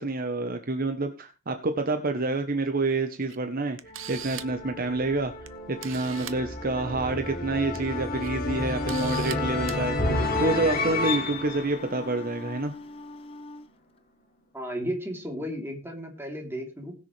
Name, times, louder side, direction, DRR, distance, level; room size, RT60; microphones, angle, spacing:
voice 1, 0.0-3.8 4.1-5.3 5.7-12.7, right 2 dB, 45° right, 7 dB, 1.0 m, -28 dB
Camera, 3.3-3.4 3.8-4.6 5.5-5.6 5.8-6.4 7.5-7.8 8.2-8.3 8.9-9.4 9.7-9.8, right 11 dB, 75° right, 1.0 m, -39 dB
sound 1, 3.8-12.9, left 2 dB, 45° left, 3.1 m, -31 dB
Wind instrument woodwind instrument, 8.2-13.7, left 4 dB, 30° left, 0.6 m, -40 dB
voice 2, 14.5-16.9, equal, 10° right, 0 dB, 3.3 m, -34 dB
20.5 x 6.9 x 3.3 m, 0.30 s
head